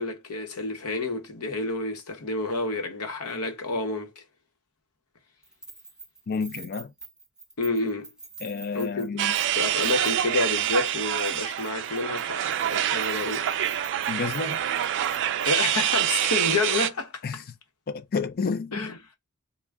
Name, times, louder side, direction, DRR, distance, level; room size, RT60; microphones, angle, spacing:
voice 1, 0.0-4.1 7.6-8.1 8.7-9.1 9.6-13.5 15.4-17.1 18.7-19.0, left 3 dB, 80° left, 0.8 m, -29 dB
Keys jangling, 5.4-10.4 10.6-10.9 11.2-15.7, right 3 dB, 5° right, 0.6 m, -46 dB
voice 2, 6.3-6.9 8.4-9.3 14.1-14.6 17.2-17.4 17.9-18.9, left 5 dB, 45° left, 0.4 m, -30 dB
sound 1, 9.2-16.9, right 11 dB, 55° right, 0.3 m, -26 dB
3.5 x 2.1 x 3.3 m
head